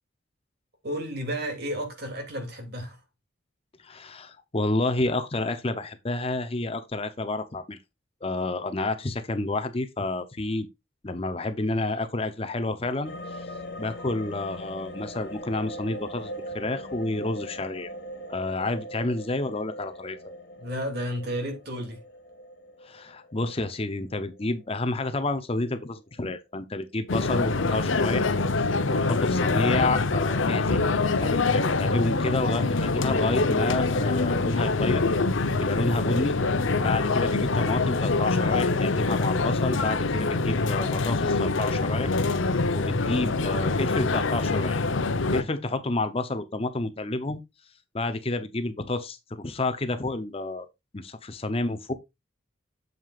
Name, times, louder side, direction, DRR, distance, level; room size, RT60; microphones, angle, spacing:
voice 1, 0.8-3.0 20.6-22.0 29.1-29.3 34.5-34.7 36.7-36.9 42.8-43.0, equal, 55° right, 2.7 m, -33 dB
voice 2, 3.8-7.8 8.2-10.7 11.0-13.5 13.8-17.9 18.3-20.2 22.8-28.3 28.9-30.8 31.2-35.0 35.6-36.4 36.8-42.1 42.7-44.8 45.3-47.4 47.9-50.7 50.9-51.9, left 2 dB, 30° left, 0.7 m, -29 dB
sound 1, 13.0-25.2 25.6-25.7, equal, 55° left, 1.8 m, -41 dB
sound 2, 27.1-45.4, left 3 dB, 75° left, 0.8 m, -25 dB
8.0 x 7.5 x 2.4 m
head